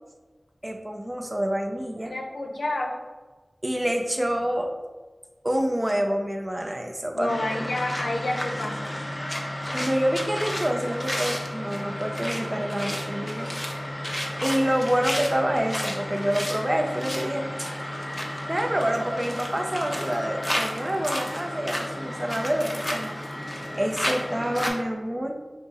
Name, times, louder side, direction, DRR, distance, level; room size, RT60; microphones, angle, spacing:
voice 1, 0.6-2.1 3.6-4.7 5.4-7.6 9.7-13.5 13.8-13.9 14.4-17.7 18.5-23.2 23.7-25.4, equal, 25° right, 3 dB, 0.4 m, -27 dB
voice 2, 2.0-3.0 7.1-8.9, left 2 dB, 85° left, 2 dB, 0.6 m, -29 dB
sound 1, 7.3-24.7, left 1 dB, 25° left, 0.7 m, -32 dB
5.2 x 2.0 x 4.0 m, 1.3 s
wide cardioid pair, 55°, 0 cm